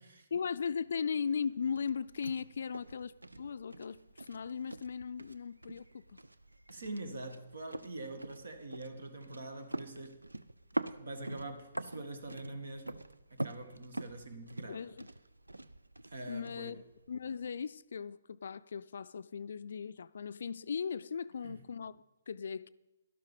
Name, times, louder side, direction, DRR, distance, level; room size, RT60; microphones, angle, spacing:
voice 1, 0.3-6.2 14.7-15.1 16.3-22.7, left 6 dB, 55° left, 0.4 m, -38 dB
sound 1, 0.6-17.6, right 1 dB, 80° right, 0.5 m, -45 dB
voice 2, 6.7-10.2 10.9-13.0 13.3-14.9 16.1-16.8 21.4-21.6, right 2 dB, 65° right, 1.8 m, -44 dB
12.5 x 12.0 x 5.2 m
figure-of-eight pair, 130°, 0 cm